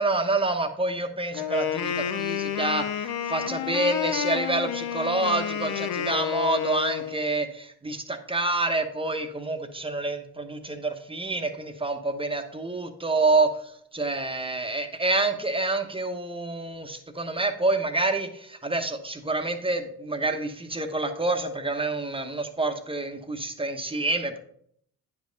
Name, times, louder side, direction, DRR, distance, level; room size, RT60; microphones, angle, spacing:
voice 1, 0.0-24.4, right 2 dB, 15° right, 6 dB, 1.0 m, -27 dB
Wind instrument woodwind instrument, 1.3-7.2, left 9 dB, 75° left, 0.8 m, -30 dB
9.5 x 5.3 x 3.9 m, 0.67 s
cardioid pair, 90°, 37 cm